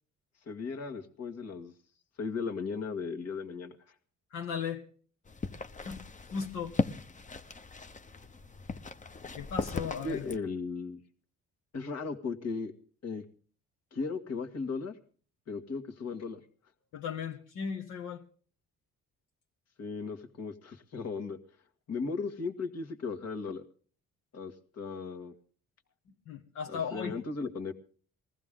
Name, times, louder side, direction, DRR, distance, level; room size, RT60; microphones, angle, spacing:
voice 1, 0.5-1.7 2.2-3.9 10.0-11.0 11.7-12.7 13.0-13.2 13.9-15.0 15.5-16.4 19.8-21.4 21.9-23.6 24.3-25.3 26.7-27.7, left 4 dB, 55° left, 1.8 m, -36 dB
voice 2, 4.3-4.9 5.8-6.0 6.3-6.8 9.4-10.2 16.9-18.2 26.1-27.2, left 6 dB, 80° left, 1.5 m, -36 dB
sound 1, 5.3-10.4, left 4 dB, 25° left, 0.8 m, -37 dB
20.5 x 15.0 x 3.7 m
cardioid pair, 90°, 30 cm